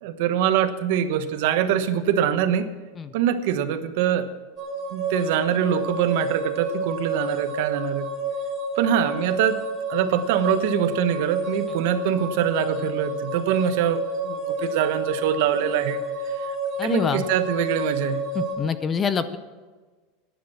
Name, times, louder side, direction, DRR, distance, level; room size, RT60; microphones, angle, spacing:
voice 1, 0.0-2.7 3.1-4.3 4.9-8.1 8.8-9.6 9.9-16.0 16.3-16.6 16.8-18.2, right 9 dB, 55° right, 10 dB, 1.1 m, -24 dB
sound 1, 4.6-18.5, right 2 dB, 25° right, 3.2 m, -29 dB
voice 2, 16.8-17.2 18.3-19.4, left 6 dB, 15° left, 12 dB, 0.5 m, -25 dB
14.0 x 10.5 x 6.1 m, 1.3 s
supercardioid pair, 170°, 0 cm